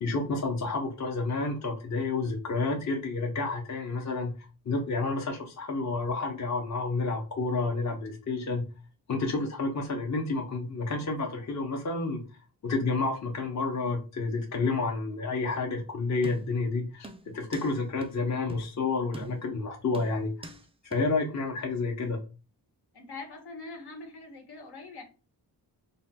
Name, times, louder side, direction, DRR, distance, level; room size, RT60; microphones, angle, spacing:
voice 1, 0.0-4.3 4.6-8.6 9.1-12.2 12.6-20.3 20.8-22.2, left 3 dB, 40° left, 0.8 m, -30 dB
sound 1, 16.2-16.7 17.0-17.7 18.0-18.1 18.5-18.7 19.1-19.6 19.9-20.6 20.9-21.0, right 2 dB, 15° right, 0.3 m, -43 dB
voice 2, 22.9-25.0, left 3 dB, 70° left, 1.0 m, -43 dB
3.3 x 2.2 x 4.1 m
wide cardioid pair, 130°, 41 cm